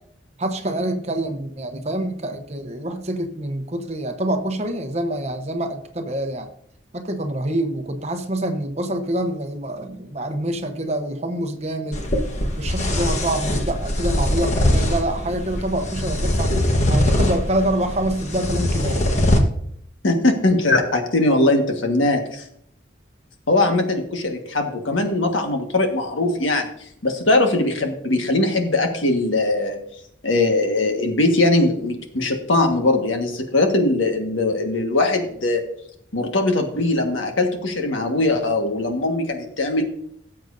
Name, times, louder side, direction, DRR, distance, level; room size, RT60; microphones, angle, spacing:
voice 1, 0.4-6.5 6.9-12.0 12.6-16.5 16.9-19.1, right 1 dB, 35° right, 7 dB, 0.9 m, -26 dB
sound 1, 11.9-19.4, left 1 dB, 35° left, 1.2 m, -22 dB
voice 2, 20.0-22.4 23.5-26.7 27.0-29.8 30.2-35.6 36.1-39.8, left 2 dB, 85° left, 4 dB, 1.6 m, -20 dB
17.5 x 7.6 x 2.7 m, 0.70 s
head